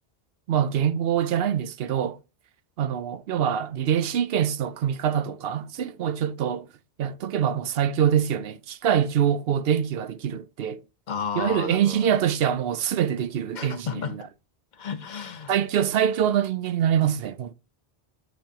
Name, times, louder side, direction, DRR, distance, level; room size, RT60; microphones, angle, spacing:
voice 1, 0.5-2.2 2.8-6.7 7.0-10.8 11.4-14.2 15.5-17.5, right 9 dB, 70° right, 0.8 m, -24 dB
voice 2, 11.1-12.2 13.5-14.2 14.7-15.5, left 6 dB, 45° left, 0.9 m, -32 dB
6.5 x 6.1 x 2.8 m
omnidirectional pair, 1.1 m